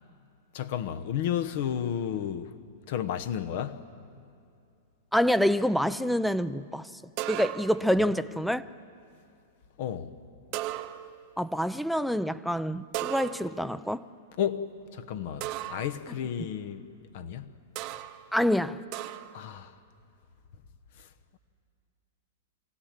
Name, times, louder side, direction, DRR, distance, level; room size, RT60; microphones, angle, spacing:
voice 1, 0.5-2.5 2.9-3.9 9.8-10.2 14.4-14.7 14.9-17.6 19.3-19.8 21.0-21.1, left 9 dB, 55° left, 1.0 m, -32 dB
voice 2, 5.1-6.8 7.3-8.6 11.4-14.0 18.3-18.8, equal, ahead, 0.5 m, -26 dB
sound 1, 7.2-7.9 10.5-11.3 12.9-13.7 15.4-16.0 17.8-18.2 18.9-19.4, right 14 dB, 45° right, 0.8 m, -36 dB
24.5 x 17.0 x 7.4 m
hypercardioid pair, 105°, 0 cm